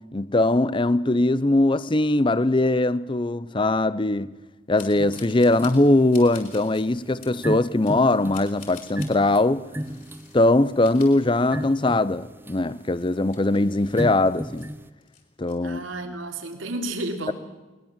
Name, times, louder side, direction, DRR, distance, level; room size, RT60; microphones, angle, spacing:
voice 1, 0.0-4.4 4.7-9.7 10.3-14.7 15.4-15.8, left 2 dB, 25° left, 0.6 m, -21 dB
sound 1, 4.8-5.9 6.1-6.9 7.2-7.4 7.8-9.2 9.8-10.4 10.7-11.9 12.2-12.3 12.8-14.7 15.0-15.5, left 7 dB, 45° left, 4.7 m, -47 dB
sound 2, 4.9-14.9, equal, 10° right, 0.8 m, -36 dB
voice 2, 15.6-17.3, right 2 dB, 80° right, 3.4 m, -31 dB
21.0 x 21.0 x 7.4 m
head